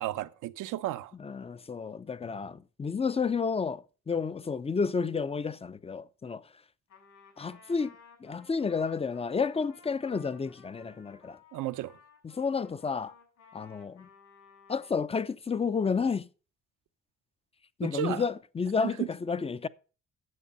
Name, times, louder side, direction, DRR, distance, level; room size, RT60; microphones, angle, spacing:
voice 1, 0.0-1.1 11.5-11.9 17.8-18.2 18.8-19.1, right 14 dB, 90° right, 0.7 m, -33 dB
voice 2, 1.2-6.4 7.4-7.9 8.2-11.4 12.2-13.1 13.5-14.1 14.7-16.3 17.8-19.7, left 5 dB, 20° left, 0.5 m, -31 dB
Trumpet, 6.9-15.0, left 5 dB, 65° left, 6.4 m, -57 dB
9.7 x 7.4 x 5.4 m
cardioid pair, 90°, 30 cm